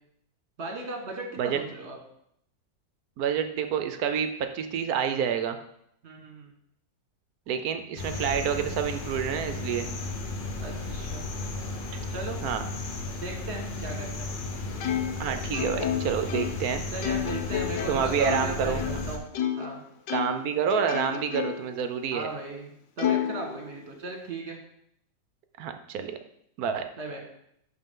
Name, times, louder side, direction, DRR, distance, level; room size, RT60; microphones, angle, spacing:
voice 1, 0.6-2.0 6.0-6.5 10.6-11.2 12.1-12.4 13.2-14.3 16.9-19.2 19.6-19.8 22.1-24.6 27.0-27.2, right 2 dB, 40° right, 2 dB, 1.6 m, -37 dB
voice 2, 3.2-5.6 7.5-9.9 12.4-12.6 15.2-16.8 17.9-19.0 20.1-22.3 25.6-26.2 26.6-26.9, right 8 dB, 65° right, 8 dB, 1.0 m, -28 dB
sound 1, 8.0-19.2, left 2 dB, 45° left, 0.6 m, -34 dB
Plucked string instrument, 14.8-19.7 20.1-21.8 22.2-22.3 23.0-24.1, left 10 dB, 85° left, 1.3 m, -31 dB
11.0 x 4.1 x 3.7 m, 0.72 s
omnidirectional pair, 1.9 m